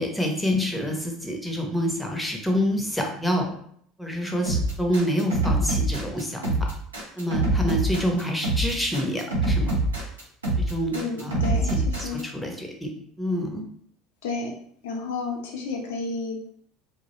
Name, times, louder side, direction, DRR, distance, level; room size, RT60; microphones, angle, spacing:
voice 1, 0.0-3.5 4.0-6.5 7.2-9.7 10.6-10.9 11.2-11.4 12.0-12.9 13.2-13.6, equal, 5° left, 1 dB, 0.6 m, -27 dB
sound 1, 4.4-12.2, right 1 dB, 90° right, 0.7 m, -24 dB
voice 2, 10.9-12.2 14.2-14.5 14.8-16.5, left 4 dB, 70° left, 1 dB, 0.5 m, -31 dB
2.2 x 2.0 x 3.0 m, 0.64 s
hypercardioid pair, 70°, 0 cm